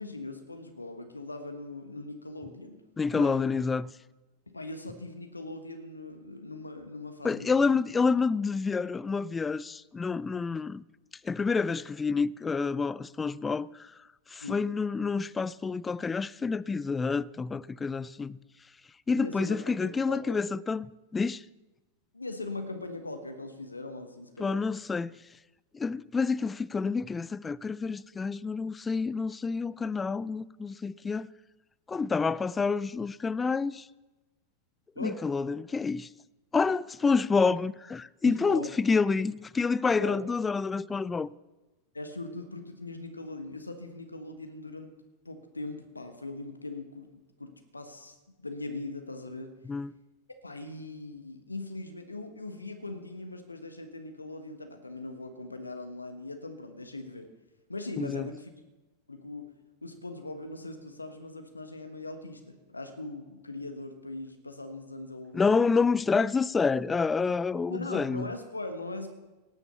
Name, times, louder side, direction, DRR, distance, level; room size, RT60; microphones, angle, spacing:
voice 1, 0.0-2.8 3.1-3.4 4.5-7.7 14.4-14.6 19.1-20.4 22.1-24.7 34.9-35.2 38.2-38.7 40.0-40.2 41.9-44.9 45.2-48.1 48.4-49.5 50.4-57.3 57.7-58.5 59.1-59.5 59.8-65.4 67.7-69.1, left 2 dB, 80° left, 1.3 m, -40 dB
voice 2, 3.0-3.9 7.2-10.8 11.2-13.9 14.3-18.4 19.1-21.4 24.4-25.2 25.7-31.3 31.9-33.9 35.0-36.1 36.5-41.3 49.7-49.9 58.0-58.3 65.3-68.3, left 4 dB, 15° left, 0.4 m, -28 dB
17.5 x 9.0 x 6.8 m
figure-of-eight pair, 90°, 0 cm